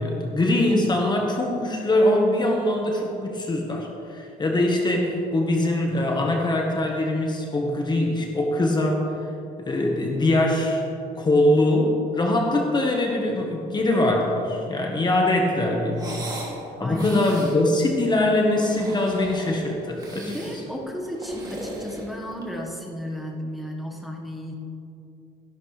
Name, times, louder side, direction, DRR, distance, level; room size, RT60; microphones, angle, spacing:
voice 1, 0.0-9.1 9.6-10.8 11.1-16.2 16.8-20.3, left 1 dB, 25° left, 1 dB, 1.3 m, -22 dB
sound 1, 15.9-16.6 16.9-17.6 18.4-19.6 20.0-20.6 21.1-22.6, right 1 dB, 25° right, 2.6 m, -38 dB
voice 2, 16.8-17.6 20.1-24.5, equal, ahead, -1 dB, 1.5 m, -34 dB
14.0 x 11.5 x 3.3 m, 2.7 s
cardioid pair, 110°, 17 cm